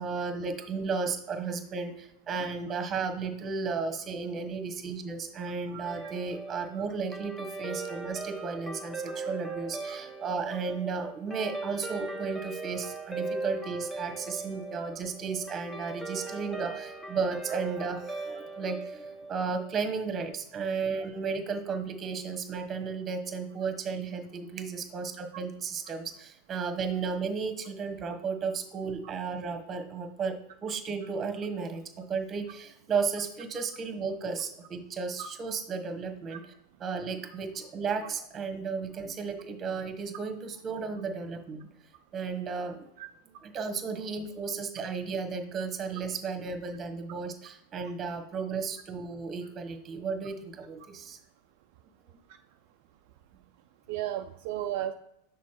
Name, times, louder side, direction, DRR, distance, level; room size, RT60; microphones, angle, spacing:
voice 1, 0.0-36.4 36.8-41.7 42.1-42.9 43.4-51.2, right 5 dB, 30° right, 6 dB, 1.3 m, -34 dB
voice 2, 5.7-6.1 8.4-8.6 9.9-10.0 36.3-36.4 43.0-43.1 53.9-54.9, right 12 dB, 60° right, 6 dB, 0.4 m, -35 dB
Guitar, 5.8-20.4, right 3 dB, 10° left, 1.1 m, -39 dB
6.2 x 3.9 x 4.5 m, 0.79 s
hypercardioid pair, 95°, 0 cm